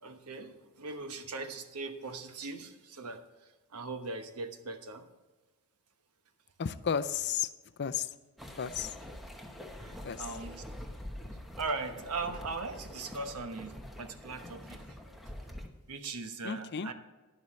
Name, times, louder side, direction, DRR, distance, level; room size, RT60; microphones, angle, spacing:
voice 1, 0.0-3.2 3.7-5.0 8.8-8.9 9.8-10.6 11.1-11.2 11.6-14.9 15.9-16.9, right 3 dB, 90° right, 7 dB, 1.1 m, -39 dB
voice 2, 6.6-7.5 7.8-8.1 8.6-8.9 10.0-10.3 16.4-16.9, left 7 dB, 50° left, 13 dB, 0.5 m, -33 dB
sound 1, 8.4-15.7, left 1 dB, ahead, 1.1 m, -45 dB
11.0 x 11.0 x 3.2 m, 1.2 s
head